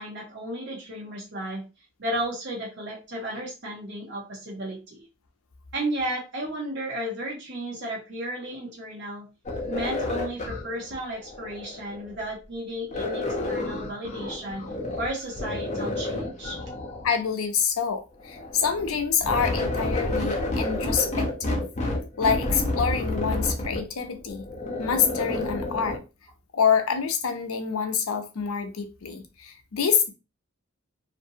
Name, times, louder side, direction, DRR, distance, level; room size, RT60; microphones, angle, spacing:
voice 1, 0.0-1.6 2.0-5.1 5.7-9.3 9.7-14.6 15.0-16.6, right 1 dB, 55° right, 0.9 m, -33 dB
sound 1, 9.5-12.2 12.9-15.1 15.3-17.2 18.2-26.0, left 1 dB, 35° left, 0.7 m, -30 dB
voice 2, 17.0-21.7 22.2-24.4 24.8-26.0 26.5-30.1, left 6 dB, 90° left, 0.6 m, -26 dB
2.6 x 2.6 x 2.7 m
head